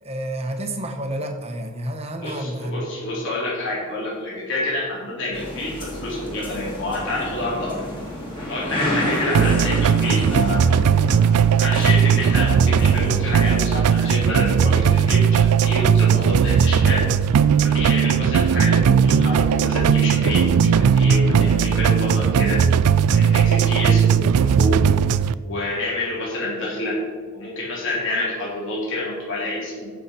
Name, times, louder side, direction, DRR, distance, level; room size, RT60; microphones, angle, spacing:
voice 1, 0.0-2.9 8.7-9.0, right 1 dB, 30° right, 5 dB, 1.1 m, -30 dB
voice 2, 2.2-7.8 8.5-11.0 11.6-17.0 17.6-22.6 23.1-24.7 25.4-27.0 27.3-29.9, left 2 dB, 55° left, -5 dB, 3.0 m, -28 dB
sound 1, 5.3-13.6, left 1 dB, 20° left, 2.5 m, -30 dB
sound 2, 9.3-25.3, right 7 dB, 90° right, 0.4 m, -17 dB
14.5 x 6.0 x 4.3 m, 1.4 s
head